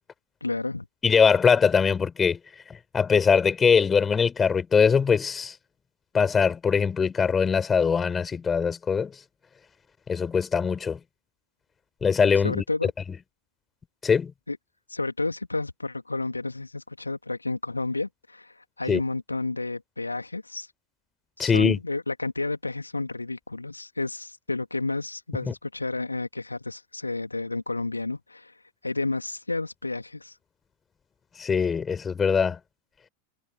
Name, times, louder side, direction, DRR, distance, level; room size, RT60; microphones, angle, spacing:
voice 1, 0.4-0.8 12.4-12.9 14.5-14.6 14.9-20.7 21.4-30.4, left 3 dB, 80° left, 2.5 m, -31 dB
voice 2, 1.0-2.4 2.9-5.5 6.1-9.1 10.1-11.0 12.0-12.6 14.0-14.3 18.9-19.0 21.4-21.8 25.5-25.6 31.4-32.6, left 6 dB, 20° left, 5.9 m, -22 dB
figure-of-eight pair, 90°, 0 cm